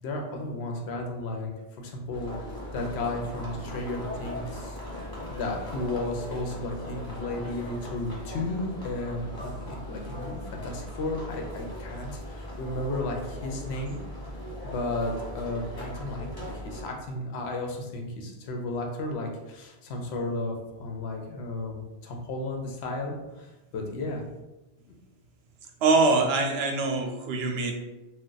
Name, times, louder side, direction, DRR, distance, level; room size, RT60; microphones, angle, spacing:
voice 1, 0.0-1.5 1.8-14.0 14.6-24.2, left 2 dB, 80° left, 1 dB, 0.9 m, -34 dB
sound 1, 2.1-16.8, left 1 dB, 25° left, 0.8 m, -39 dB
voice 2, 25.8-27.7, right 3 dB, 75° right, 3 dB, 0.8 m, -23 dB
2.4 x 2.2 x 3.8 m, 1.0 s
omnidirectional pair, 1.1 m